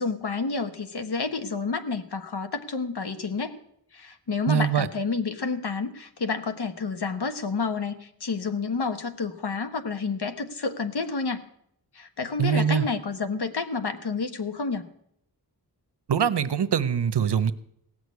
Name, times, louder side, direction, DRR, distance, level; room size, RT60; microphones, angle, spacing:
voice 1, 0.0-3.5 3.9-11.4 11.9-14.8, left 4 dB, 70° left, 8 dB, 1.3 m, -29 dB
voice 2, 4.5-4.9 12.4-12.8 16.1-17.5, right 8 dB, 80° right, 13 dB, 0.8 m, -23 dB
17.0 x 6.4 x 9.5 m, 0.71 s
wide cardioid pair, 85°, 41 cm